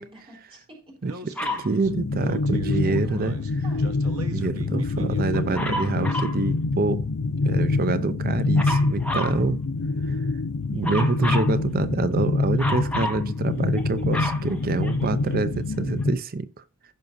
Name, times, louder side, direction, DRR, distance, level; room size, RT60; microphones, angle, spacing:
voice 1, 0.0-1.7 2.6-4.2 11.6-11.7, right 1 dB, 25° right, 3.8 m, -47 dB
Speech, 1.0-6.2, right 2 dB, 70° right, 1.2 m, -41 dB
Dog, 1.4-1.7 5.5-6.4 8.6-9.4 10.8-11.5 12.6-13.2 13.8-15.3 16.0-16.1, left 1 dB, 5° left, 1.3 m, -30 dB
voice 2, 1.6-3.3 4.3-7.1 7.4-9.6 10.0-10.3 10.7-16.5, right 3 dB, 40° right, 0.6 m, -26 dB
sound 1, 1.8-16.2, left 3 dB, 80° left, 0.6 m, -26 dB
16.0 x 5.9 x 2.7 m
head